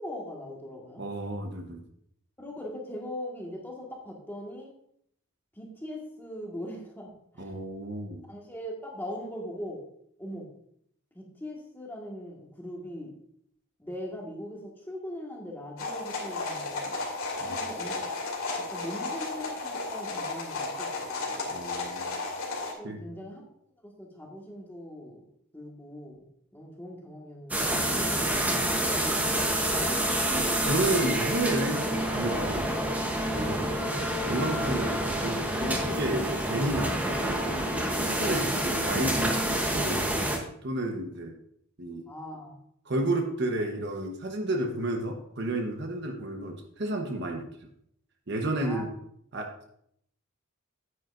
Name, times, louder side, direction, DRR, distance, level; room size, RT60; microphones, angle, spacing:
voice 1, 0.0-1.0 2.4-4.7 5.5-7.5 8.3-9.8 10.2-10.5 11.1-13.1 13.8-17.0 17.4-18.1 18.7-21.4 22.8-23.4 23.8-25.2 25.5-26.2 26.5-29.4 33.3-33.5 38.2-38.4 42.1-42.6 48.6-48.8, equal, 10° left, -2 dB, 1.6 m, -40 dB
voice 2, 1.0-1.8 7.4-8.2 17.4-17.6 21.5-22.2 22.8-23.1 30.6-32.8 33.3-33.6 34.2-37.4 38.0-40.0 40.6-41.3 41.8-42.0 42.9-47.5 48.3-48.9 49.3-49.5, right 1 dB, 55° right, 4 dB, 1.0 m, -31 dB
sound 1, 15.8-22.7, left 3 dB, 80° left, 2.4 m, -34 dB
sound 2, 27.5-40.4, right 1 dB, 5° right, 0.9 m, -28 dB
9.3 x 9.3 x 2.5 m, 0.70 s
head